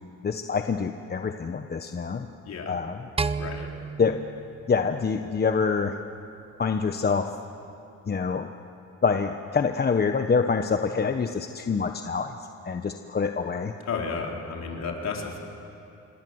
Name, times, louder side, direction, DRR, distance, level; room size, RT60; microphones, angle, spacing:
voice 1, 0.2-2.3 2.7-3.0 4.0-4.2 4.7-6.0 6.6-7.3 8.1-8.5 9.0-12.3 12.6-13.7, left 5 dB, 30° left, 7 dB, 1.1 m, -26 dB
voice 2, 2.4-2.8 3.4-3.7 13.8-15.4, left 5 dB, 60° left, 0 dB, 4.3 m, -32 dB
sound 1, 3.2-5.6, right 4 dB, 20° right, 0.8 m, -33 dB
27.0 x 23.5 x 7.9 m, 2.8 s
cardioid pair, 90°, 30 cm